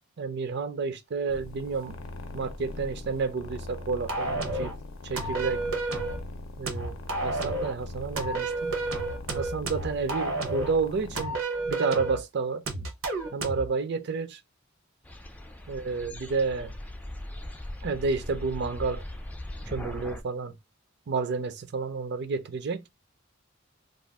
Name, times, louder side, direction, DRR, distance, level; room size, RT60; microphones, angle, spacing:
voice 1, 0.2-2.0 2.3-4.7 5.0-5.6 6.6-8.7 9.3-11.4 11.7-12.6 13.3-14.4 15.7-16.7 17.8-19.0 19.7-20.6 21.1-22.8, right 4 dB, 55° right, 0.4 m, -30 dB
sound 1, 1.3-11.2, left 2 dB, 90° left, 0.6 m, -41 dB
sound 2, 4.1-4.8 5.2-6.2 6.7-7.8 8.2-10.8 11.2-12.2 12.7-13.7, right 2 dB, 80° right, 0.8 m, -31 dB
sound 3, 15.0-20.2, left 1 dB, 5° left, 0.3 m, -39 dB
2.5 x 2.3 x 3.4 m
head